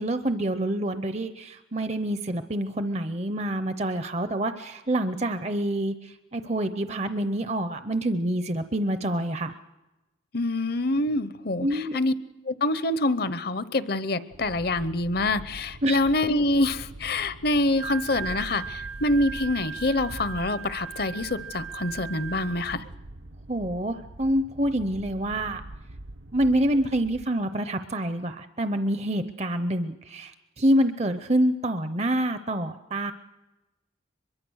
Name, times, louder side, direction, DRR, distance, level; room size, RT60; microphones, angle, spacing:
voice 1, 0.0-9.5 11.6-12.0 15.8-16.0 23.5-25.6 26.3-33.1, right 1 dB, 35° right, 10 dB, 0.7 m, -27 dB
voice 2, 10.3-12.1 12.4-22.8, left 2 dB, 50° left, 14 dB, 0.8 m, -26 dB
sound 1, 14.3-27.3, right 1 dB, 85° right, 1.1 m, -44 dB
Wind instrument woodwind instrument, 17.6-22.9, right 7 dB, 60° right, 0.9 m, -38 dB
24.0 x 22.0 x 6.4 m, 1.1 s
head